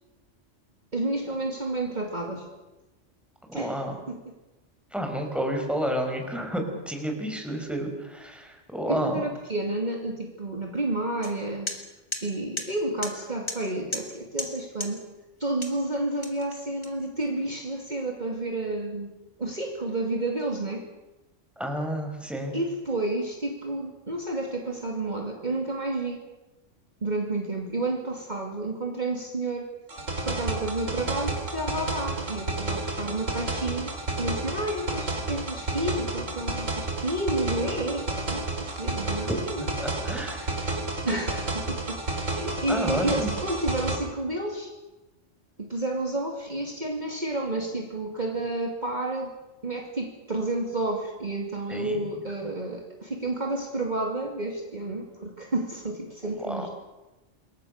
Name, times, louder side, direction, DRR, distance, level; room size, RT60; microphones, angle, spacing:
voice 1, 0.9-2.5 3.5-3.8 4.1-4.3 8.9-11.7 12.2-15.0 15.4-20.8 22.5-26.2 27.0-29.7 30.2-39.7 41.0-44.7 45.6-49.3 49.6-56.7, right 2 dB, 35° right, 1 dB, 2.6 m, -30 dB
voice 2, 3.5-4.0 4.9-9.2 21.6-22.5 39.8-40.7 42.7-43.3 51.7-52.0 52.4-52.5 56.4-56.7, equal, ahead, 3 dB, 4.8 m, -30 dB
sound 1, 11.2-11.3 11.7-11.8 12.1-12.2 12.6-12.7 13.0-13.1 13.5-13.6 13.9-14.1 14.4-14.5 14.8-14.9 15.6-15.8 16.2-17.3, left 2 dB, 20° left, 3.0 m, -33 dB
sound 2, 29.9-44.0, right 2 dB, 90° right, 3.9 m, -31 dB
27.5 x 22.0 x 6.5 m, 1.0 s
omnidirectional pair, 1.3 m